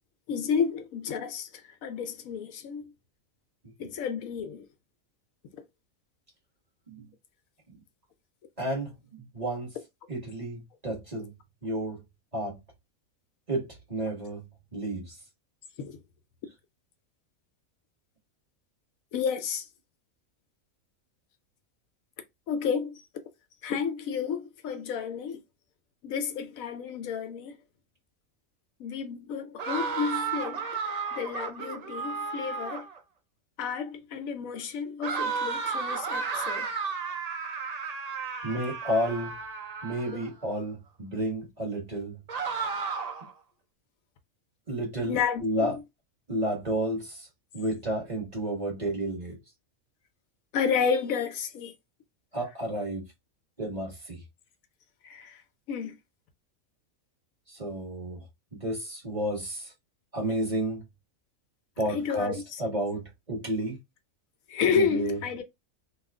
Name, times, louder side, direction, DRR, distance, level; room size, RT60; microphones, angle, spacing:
voice 1, 0.3-2.9 3.8-4.7 15.8-16.0 19.1-19.7 22.5-23.0 23.6-25.4 26.0-27.6 28.8-30.7 31.1-32.9 33.6-36.7 45.1-45.8 50.5-51.7 55.0-55.4 55.7-56.0 61.9-62.6 64.5-65.4, left 6 dB, 80° left, 1.0 m, -31 dB
voice 2, 8.6-9.7 10.1-11.3 11.6-12.0 12.3-12.6 13.5-14.5 14.7-15.2 38.4-39.3 39.8-42.2 44.7-45.7 46.3-47.3 47.5-49.4 52.3-53.0 53.6-54.2 57.5-58.2 58.6-59.7 60.1-60.8 61.8-63.8 64.7-65.2, right 1 dB, 30° right, 1.4 m, -31 dB
sound 1, 29.6-33.0 35.0-40.3 42.3-43.3, right 5 dB, 75° right, 0.3 m, -33 dB
3.0 x 2.4 x 3.4 m
omnidirectional pair, 1.4 m